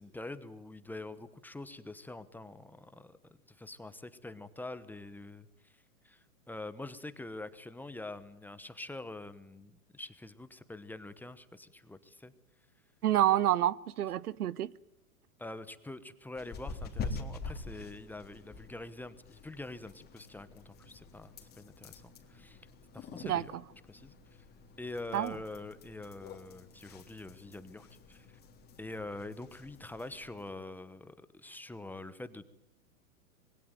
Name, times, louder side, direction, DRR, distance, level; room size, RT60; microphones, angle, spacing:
voice 1, 0.0-5.7 6.0-12.3 15.4-22.6 22.9-23.6 23.9-24.1 24.8-28.4 28.8-32.4, left 2 dB, 5° left, 1.0 m, -45 dB
voice 2, 13.0-14.7 23.2-23.4 25.1-25.3, right 12 dB, 85° right, 1.0 m, -28 dB
sound 1, 16.3-30.5, left 4 dB, 20° left, 3.5 m, -46 dB
25.5 x 21.5 x 9.4 m
hypercardioid pair, 135°, 44 cm